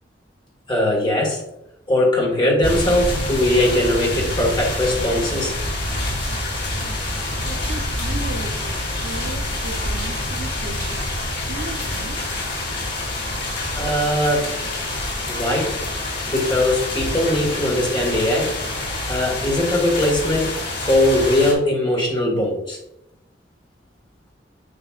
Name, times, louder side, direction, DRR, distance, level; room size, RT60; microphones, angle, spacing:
voice 1, 0.7-1.4 1.9-5.5 13.7-14.5 15.3-15.8 16.3-18.5 19.1-22.8, left 1 dB, 25° left, 1.8 m, -20 dB
sound 1, 2.6-21.5, left 1 dB, 60° left, 2.3 m, -27 dB
voice 2, 7.4-11.2 11.5-12.3, right 3 dB, 75° right, 0.6 m, -35 dB
7.7 x 5.6 x 2.4 m
head